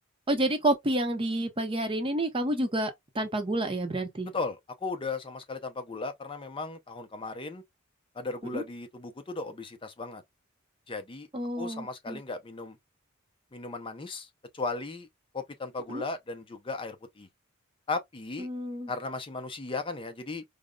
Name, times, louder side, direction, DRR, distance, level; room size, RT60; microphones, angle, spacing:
voice 1, 0.3-4.3 8.5-8.6 11.3-12.2 15.9-16.0 18.4-18.9, right 1 dB, 25° right, 0.7 m, -29 dB
voice 2, 4.3-7.6 8.1-10.2 10.9-11.3 11.6-12.8 13.5-14.3 14.5-15.1 15.3-17.3 17.9-18.5 18.9-20.4, left 3 dB, 25° left, 0.5 m, -36 dB
5.0 x 2.0 x 2.2 m
head